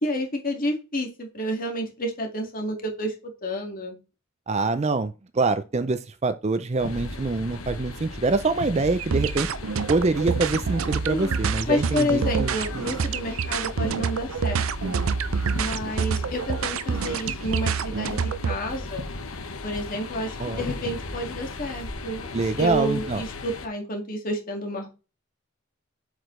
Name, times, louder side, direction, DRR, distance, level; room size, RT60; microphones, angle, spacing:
voice 1, 0.0-4.0 11.1-11.4 11.7-14.9 15.5-19.0 19.6-22.3 22.6-24.9, equal, 40° left, 2.1 m, -30 dB
voice 2, 4.5-9.5 9.9-12.9 20.4-20.6 22.3-23.2, right 3 dB, 30° right, 0.4 m, -25 dB
sound 1, 6.8-23.7, left 2 dB, 90° left, 1.2 m, -36 dB
sound 2, 9.0-18.6, right 6 dB, 80° right, 0.6 m, -27 dB
7.7 x 5.0 x 3.2 m
head